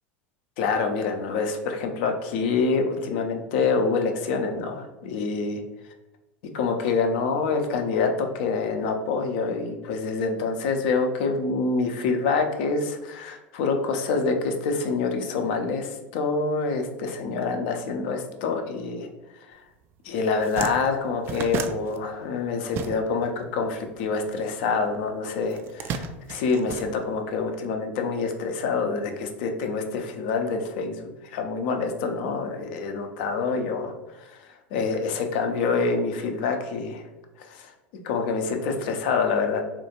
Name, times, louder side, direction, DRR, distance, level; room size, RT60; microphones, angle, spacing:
voice 1, 0.6-5.6 6.5-19.1 20.0-33.9 34.7-37.0 37.4-37.7 38.0-39.6, left 4 dB, 55° left, 5 dB, 0.5 m, -26 dB
sound 1, 19.8-19.9 20.2-23.4 23.6-24.8 25.5-27.5, right 6 dB, 40° right, 0.3 m, -34 dB
4.3 x 2.4 x 2.8 m, 1.0 s
figure-of-eight pair, 80°, 6 cm